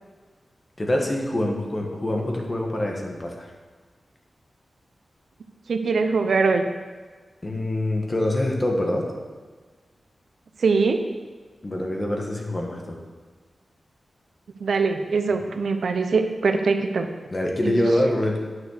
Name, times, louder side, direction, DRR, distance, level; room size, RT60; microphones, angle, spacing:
voice 1, 0.8-3.4 7.4-9.0 11.6-13.0 17.3-18.4, left 1 dB, 25° left, 1 dB, 1.5 m, -25 dB
voice 2, 5.7-6.6 10.6-11.0 14.6-17.1 17.6-17.8, right 4 dB, 80° right, 7 dB, 0.8 m, -22 dB
9.6 x 6.4 x 6.5 m, 1.4 s
wide cardioid pair, 150°, 0 cm